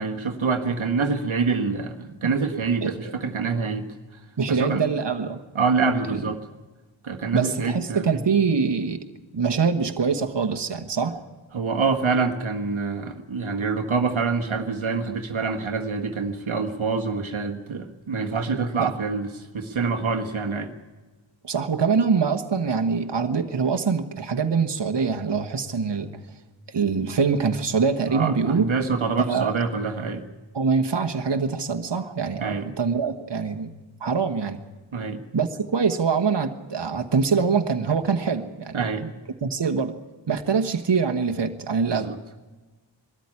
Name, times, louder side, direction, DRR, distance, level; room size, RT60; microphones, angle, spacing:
voice 1, 0.0-3.9 4.5-4.8 5.5-6.4 7.0-8.2 11.5-20.7 28.1-30.2 32.4-32.7 34.9-35.2 38.7-39.0 41.9-42.2, right 4 dB, 80° right, 4 dB, 1.4 m, -26 dB
voice 2, 2.8-3.1 3.5-3.7 4.4-5.4 6.1-6.3 7.3-9.0 9.3-11.2 18.8-18.9 21.4-26.1 26.7-28.7 29.2-29.5 30.5-33.7 34.0-34.6 35.3-39.1 39.4-42.1, right 5 dB, 60° right, 5 dB, 1.4 m, -24 dB
21.5 x 13.5 x 9.7 m, 1.2 s
wide cardioid pair, 70°, 47 cm